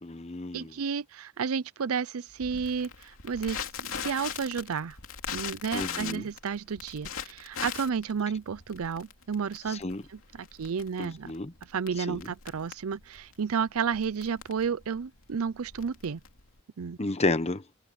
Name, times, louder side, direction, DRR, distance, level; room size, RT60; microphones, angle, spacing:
voice 1, 0.0-0.7 5.7-6.3 9.7-10.0 11.0-11.5 12.0-12.3 17.0-17.6, left 2 dB, 30° left, 1.0 m, -31 dB
voice 2, 0.5-5.0 5.3-9.8 10.4-11.3 11.7-16.2 16.8-17.0, right 6 dB, 85° right, 0.5 m, -32 dB
Crackle, 2.4-16.6, left 7 dB, 75° left, 2.9 m, -40 dB
open air
head